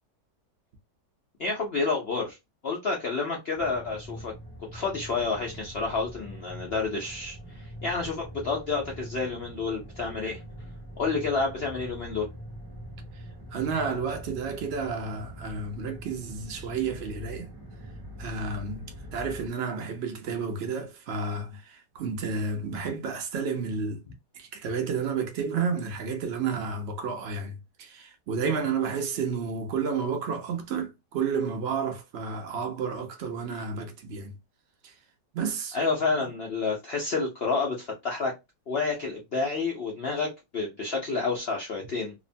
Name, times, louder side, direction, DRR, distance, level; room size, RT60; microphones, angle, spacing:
voice 1, 1.4-2.4 2.6-4.3 4.7-10.4 11.0-12.3 35.7-38.3 38.7-42.1, left 4 dB, 70° left, 0.5 m, -29 dB
sound 1, 3.5-19.5, equal, 20° right, 0.6 m, -43 dB
voice 2, 13.5-17.5 18.2-24.0 24.3-34.3 34.8-34.9 35.3-35.8 36.2-36.3, right 5 dB, 65° right, 0.6 m, -31 dB
2.9 x 2.1 x 2.6 m
omnidirectional pair, 1.9 m